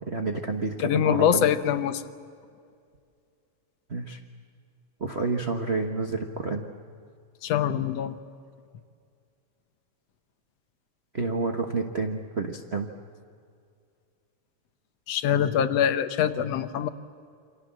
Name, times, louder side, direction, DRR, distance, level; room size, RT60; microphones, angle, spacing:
voice 1, 0.0-1.5 3.9-4.2 5.0-6.7 11.1-12.9, right 3 dB, 80° right, 3 dB, 0.5 m, -29 dB
voice 2, 0.8-2.0 7.4-8.2 15.1-16.9, left 9 dB, 65° left, 9 dB, 1.9 m, -24 dB
28.5 x 25.0 x 7.6 m, 2.3 s
omnidirectional pair, 3.4 m